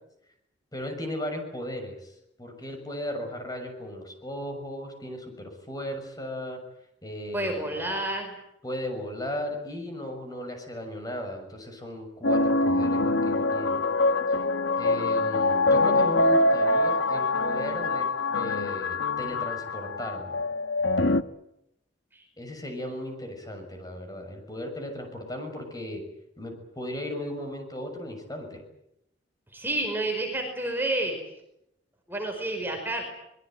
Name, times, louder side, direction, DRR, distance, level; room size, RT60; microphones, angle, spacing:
voice 1, 0.7-2.1 2.4-6.6 7.0-7.8 8.6-13.8 14.3-14.4 14.8-20.4 22.4-26.0 26.4-28.6, left 1 dB, 20° left, 5 dB, 6.6 m, -36 dB
voice 2, 7.3-8.3 22.1-22.2 29.5-31.2 32.1-33.1, right 1 dB, 10° right, 2 dB, 5.1 m, -29 dB
sound 1, 12.2-21.2, left 2 dB, 90° left, 1.1 m, -24 dB
24.5 x 22.0 x 9.2 m, 0.81 s
head